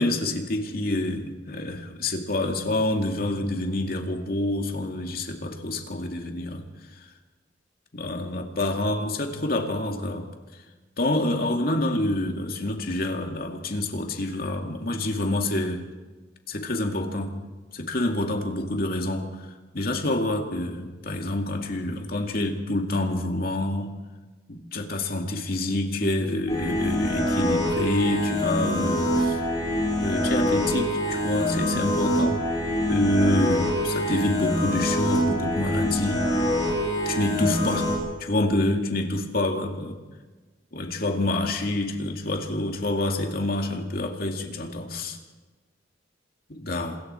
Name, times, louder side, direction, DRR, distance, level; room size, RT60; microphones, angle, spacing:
voice 1, 0.0-6.6 7.9-10.2 11.0-15.8 16.5-17.3 17.7-23.9 24.5-29.5 30.0-32.4 32.9-36.3 37.1-37.9 38.2-40.0 40.7-45.2 46.5-47.0, left 1 dB, 55° left, 3 dB, 2.3 m, -27 dB
sound 1, 26.5-38.0, equal, 20° left, 7.4 m, -25 dB
27.0 x 22.0 x 4.5 m, 1.3 s
head